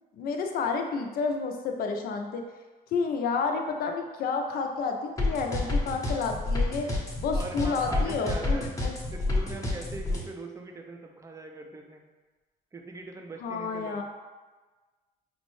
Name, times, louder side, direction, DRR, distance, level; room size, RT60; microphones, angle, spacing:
voice 1, 0.2-2.4 2.9-8.9 13.4-14.0, left 4 dB, 60° left, 3 dB, 0.5 m, -30 dB
sound 1, 5.2-10.2, left 2 dB, 20° left, 0.8 m, -28 dB
voice 2, 7.3-8.7 9.1-12.0 12.7-14.0, right 2 dB, 20° right, 3 dB, 0.4 m, -41 dB
5.1 x 2.1 x 3.1 m, 1.3 s
cardioid pair, 110°, 17 cm